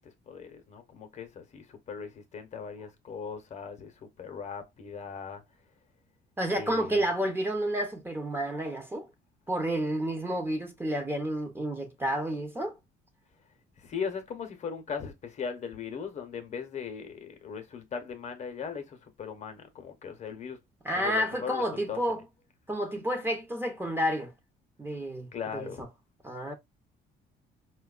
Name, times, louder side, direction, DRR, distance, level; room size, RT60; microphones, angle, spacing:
voice 1, 0.0-5.4 6.5-7.1 13.8-20.6 20.9-22.0 25.3-25.8, left 6 dB, 45° left, 0.8 m, -39 dB
voice 2, 6.4-9.1 9.5-12.8 20.8-22.2 22.7-24.3 24.8-25.7 26.2-26.5, equal, 15° right, 0.8 m, -30 dB
4.5 x 2.2 x 2.3 m
cardioid pair, 110°, 17 cm